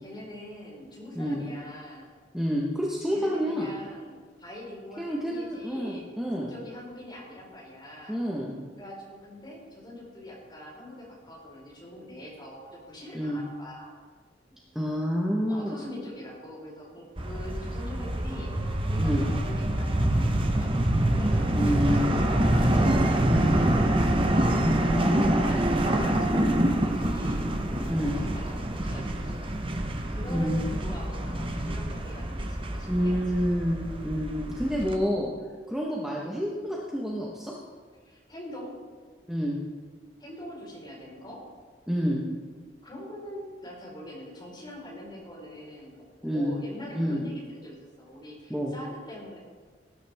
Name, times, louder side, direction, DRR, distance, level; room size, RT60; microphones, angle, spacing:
voice 1, 0.0-2.1 3.1-6.1 6.5-8.2 8.8-13.9 15.5-24.1 25.3-33.4 38.0-38.8 40.2-41.4 42.8-49.4, left 1 dB, 25° left, -4 dB, 4.6 m, -43 dB
voice 2, 2.3-3.7 5.0-6.5 8.1-8.6 13.1-13.4 14.7-15.8 19.0-19.3 21.5-22.1 23.3-23.4 24.6-25.5 26.3-26.6 27.9-28.1 30.3-30.6 32.9-35.3 35.7-37.5 39.3-39.6 41.9-42.2 46.2-46.5 46.9-47.2 48.5-48.7, equal, 5° right, -4 dB, 1.3 m, -28 dB
sound 1, 17.2-35.0, right 1 dB, 30° right, 1.0 m, -26 dB
18.5 x 9.9 x 3.6 m, 1.5 s
head